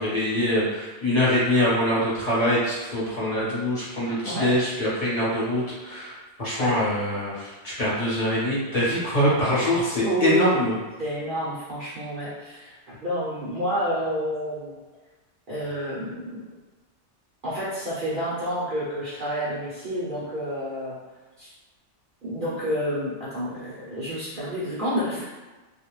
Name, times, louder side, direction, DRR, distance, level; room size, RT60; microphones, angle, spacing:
voice 1, 0.0-6.1 6.4-10.7, left 1 dB, 35° left, -8 dB, 0.9 m, -24 dB
voice 2, 4.1-4.6 6.6-6.8 10.0-10.5 11.0-14.8 15.5-16.5 17.4-21.0 21.4-21.5 22.2-25.3, equal, 55° right, -9 dB, 0.7 m, -29 dB
2.4 x 2.1 x 3.0 m, 1.2 s
omnidirectional pair, 1.2 m